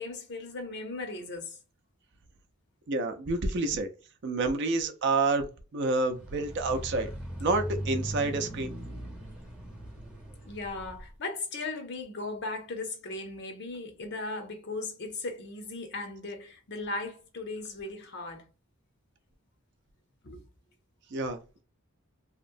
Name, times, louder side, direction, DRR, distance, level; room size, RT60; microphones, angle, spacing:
voice 1, 0.0-1.6 10.4-18.5 20.2-20.4, left 3 dB, 55° left, 0.6 m, -37 dB
voice 2, 2.9-3.9 4.2-7.1 7.4-8.7 21.1-21.6, right 3 dB, 55° right, 0.5 m, -29 dB
sound 1, 6.1-11.1, right 1 dB, 5° right, 0.6 m, -39 dB
2.9 x 2.0 x 2.5 m
head